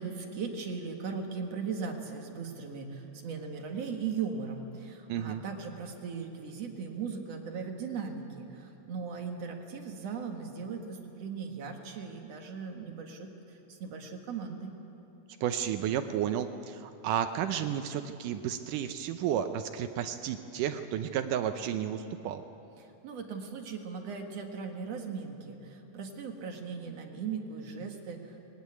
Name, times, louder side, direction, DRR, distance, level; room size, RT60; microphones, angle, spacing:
voice 1, 0.0-14.7 22.8-28.4, right 5 dB, 50° right, 3 dB, 2.3 m, -38 dB
voice 2, 5.1-5.4 15.4-22.4, right 9 dB, 80° right, 8 dB, 1.9 m, -32 dB
20.5 x 17.5 x 9.7 m, 3.0 s
omnidirectional pair, 4.4 m